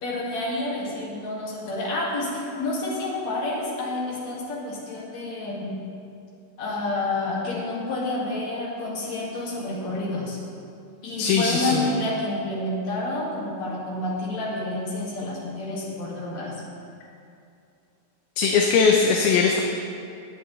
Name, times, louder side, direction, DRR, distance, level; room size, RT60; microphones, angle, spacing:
voice 1, 0.0-5.7 6.6-10.4 11.0-16.5, left 2 dB, 50° left, -5 dB, 2.8 m, -29 dB
voice 2, 11.2-11.9 18.4-19.6, left 5 dB, 80° left, 1 dB, 2.5 m, -20 dB
21.0 x 7.3 x 3.2 m, 2.5 s
omnidirectional pair, 4.6 m